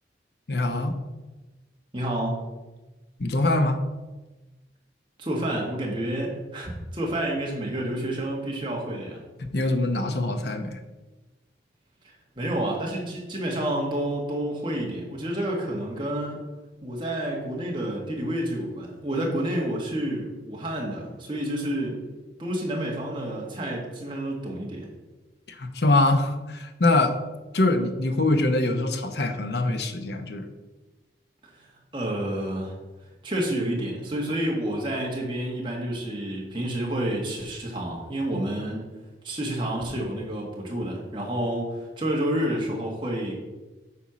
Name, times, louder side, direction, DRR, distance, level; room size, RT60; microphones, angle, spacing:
voice 1, 0.5-1.0 3.2-3.8 9.5-10.8 25.5-27.2 27.5-30.5, left 2 dB, 65° left, 7 dB, 0.9 m, -23 dB
voice 2, 1.9-2.4 5.2-9.2 12.4-16.4 16.8-22.0 22.4-24.9 31.5-31.7 31.9-32.8 33.2-38.9 39.2-43.4, right 1 dB, 25° right, -2 dB, 1.7 m, -29 dB
8.3 x 4.4 x 6.1 m, 1.2 s
head